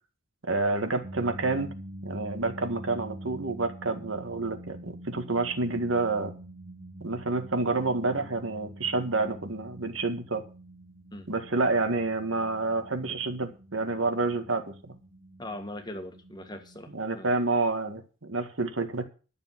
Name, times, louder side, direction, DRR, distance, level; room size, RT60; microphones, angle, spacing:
voice 1, 0.5-1.7 2.0-6.3 7.0-10.4 11.3-14.7 16.9-19.1, right 3 dB, 65° right, 7 dB, 1.9 m, -28 dB
sound 1, 1.0-16.8, right 1 dB, 50° right, 1.6 m, -45 dB
voice 2, 15.4-17.4, left 1 dB, 20° left, 6 dB, 1.6 m, -41 dB
12.0 x 7.2 x 7.5 m, 0.35 s
head